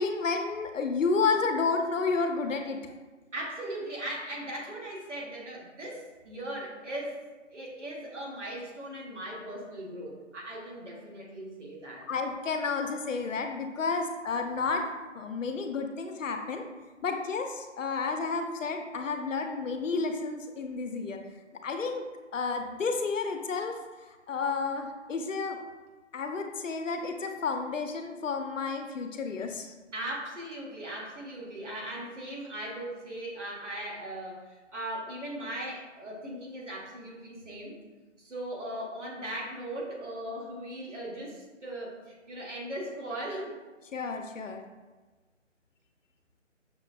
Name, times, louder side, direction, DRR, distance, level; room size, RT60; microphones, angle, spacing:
voice 1, 0.0-2.8 12.1-14.9 15.1-16.6 17.0-21.2 21.6-22.1 22.3-23.8 24.3-25.6 26.1-29.7 43.9-44.6, left 4 dB, 80° left, 5 dB, 0.6 m, -31 dB
voice 2, 3.3-7.2 7.5-12.1 29.9-37.8 38.2-43.6, right 1 dB, 70° right, -3 dB, 1.4 m, -38 dB
6.1 x 2.2 x 2.4 m, 1.3 s
figure-of-eight pair, 165°, 38 cm